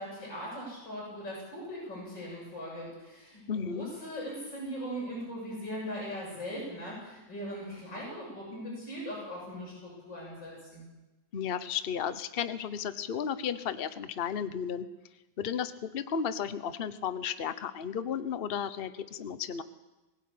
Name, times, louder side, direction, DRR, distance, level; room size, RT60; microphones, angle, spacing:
voice 1, 0.0-10.8, equal, 90° left, -6 dB, 8.7 m, -40 dB
voice 2, 3.5-3.9 11.3-14.9 15.4-19.6, left 7 dB, 40° left, 12 dB, 1.0 m, -34 dB
21.5 x 16.5 x 8.7 m, 1.1 s
omnidirectional pair, 1.9 m